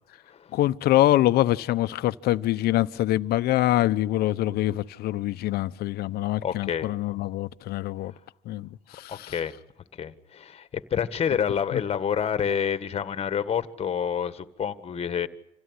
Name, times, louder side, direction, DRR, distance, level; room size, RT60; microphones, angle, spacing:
voice 1, 0.5-8.1 8.5-9.3 11.7-11.8, left 15 dB, 60° left, 1.0 m, -24 dB
voice 2, 6.4-6.9 9.1-9.5 10.0-15.3, left 8 dB, 35° left, 1.7 m, -28 dB
27.0 x 16.5 x 9.8 m
supercardioid pair, 105°, 18 cm